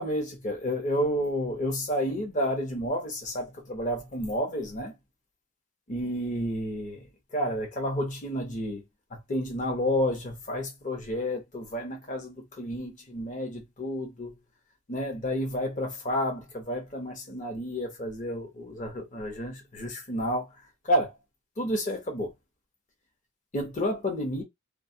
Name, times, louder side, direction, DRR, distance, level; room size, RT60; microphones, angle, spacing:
voice 1, 0.0-4.9 5.9-7.0 7.3-8.8 9.1-14.3 14.9-20.5 20.8-21.1 21.6-22.3 23.5-24.4, equal, 35° left, 0.8 m, -30 dB
2.3 x 2.1 x 2.6 m
head